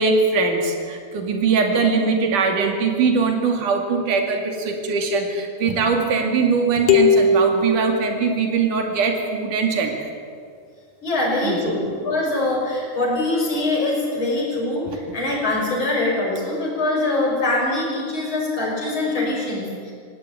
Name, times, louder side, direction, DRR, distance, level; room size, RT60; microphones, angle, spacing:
voice 1, 0.0-10.1 11.4-11.8, right 4 dB, 75° right, 3 dB, 3.9 m, -21 dB
sound 1, 6.9-8.8, left 3 dB, 75° left, 3.1 m, -19 dB
voice 2, 11.0-19.9, left 2 dB, 35° left, -3 dB, 6.7 m, -23 dB
19.5 x 17.0 x 8.9 m, 2.2 s
omnidirectional pair, 3.7 m